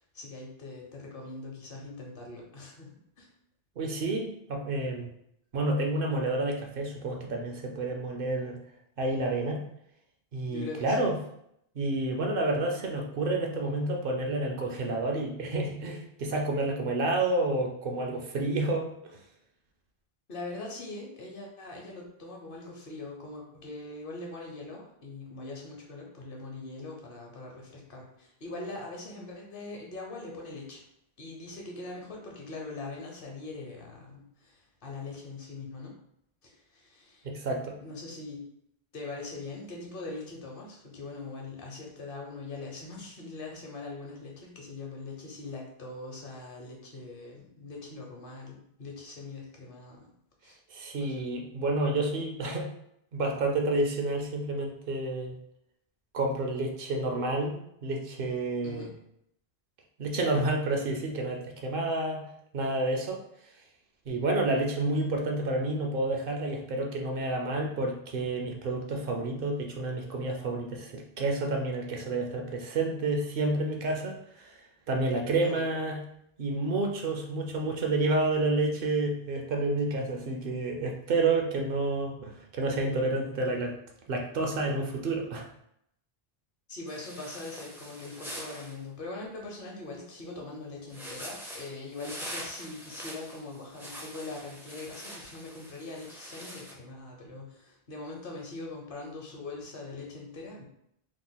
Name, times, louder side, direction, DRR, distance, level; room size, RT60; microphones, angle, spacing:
voice 1, 0.1-2.9 3.2-3.3 10.5-11.0 20.3-30.8 31.2-35.9 36.4-37.3 37.8-38.5 38.9-50.1 50.4-50.6 51.0-51.1 58.6-58.9 75.4-75.8 86.7-100.6, left 3 dB, 60° left, -1 dB, 0.9 m, -42 dB
voice 2, 3.8-5.1 5.5-8.6 9.0-9.6 10.3-11.2 11.8-18.9 37.2-37.8 50.7-52.7 53.1-55.4 56.1-58.9 60.0-62.2 62.5-63.2 64.1-74.6 74.9-76.0 76.4-83.8 84.1-85.4, right 2 dB, 65° right, 2 dB, 0.7 m, -29 dB
sound 1, 86.9-88.8 90.9-96.7, equal, 5° right, 0.3 m, -44 dB
2.9 x 2.2 x 3.8 m, 0.75 s
omnidirectional pair, 1.0 m